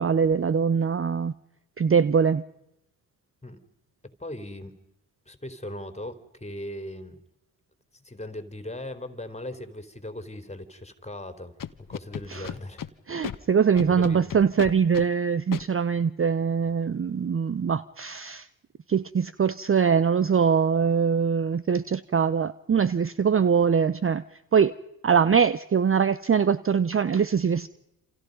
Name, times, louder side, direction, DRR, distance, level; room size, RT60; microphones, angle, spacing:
voice 1, 0.0-1.3 1.8-2.4 12.3-12.5 13.1-18.5 18.9-24.2 24.5-24.8 25.0-27.7, right 6 dB, 30° right, 17 dB, 0.8 m, -23 dB
voice 2, 4.0-4.8 5.3-7.2 7.9-11.5 11.8-12.9 13.9-14.2, left 1 dB, 15° left, 10 dB, 3.9 m, -38 dB
Scratching (performance technique), 11.6-12.9 13.2-13.4 13.8-15.1 15.5-15.6, left 8 dB, 45° left, 1.4 m, -34 dB
28.5 x 27.0 x 5.4 m, 0.85 s
hypercardioid pair, 45°, 47 cm